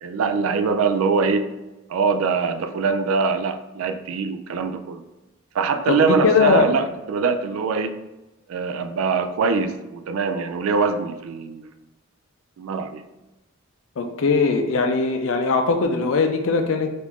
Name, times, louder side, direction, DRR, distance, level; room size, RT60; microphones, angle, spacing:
voice 1, 0.0-1.5 1.9-5.0 5.5-8.0 8.5-11.7 12.6-13.0, right 5 dB, 80° right, 10 dB, 0.3 m, -23 dB
voice 2, 5.9-6.8 14.0-16.9, left 4 dB, 70° left, 6 dB, 0.4 m, -20 dB
3.4 x 2.5 x 3.0 m, 1.0 s
head